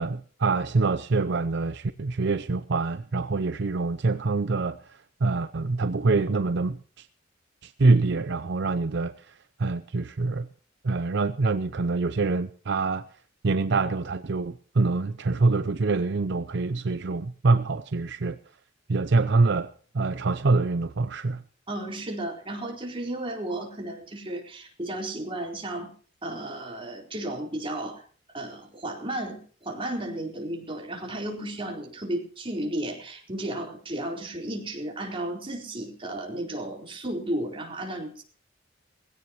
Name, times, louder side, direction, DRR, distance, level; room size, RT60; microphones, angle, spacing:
voice 1, 0.0-7.1 7.6-10.5 10.8-13.1 13.4-18.4 18.9-21.4, right 3 dB, 65° right, 0.6 m, -25 dB
voice 2, 21.7-25.9 26.2-28.0 28.3-38.2, right 1 dB, 30° right, 4.2 m, -33 dB
20.5 x 16.5 x 3.1 m
head